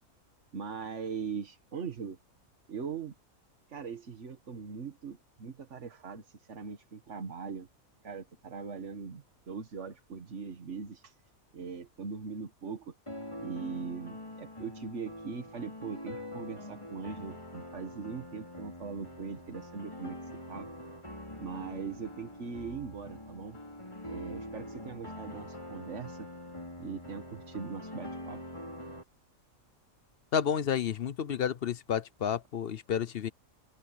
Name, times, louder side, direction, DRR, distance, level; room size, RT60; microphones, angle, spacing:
voice 1, 0.5-2.2 2.7-3.1 3.7-7.7 8.0-11.2 11.5-12.9 13.4-20.2 20.5-20.7 21.4-23.6 24.1-26.3 26.8-28.4, right 5 dB, 55° right, 1.7 m, -40 dB
sound 1, 13.1-29.0, left 1 dB, 20° left, 4.6 m, -44 dB
voice 2, 30.3-33.3, left 8 dB, 55° left, 0.8 m, -31 dB
omnidirectional pair, 1.5 m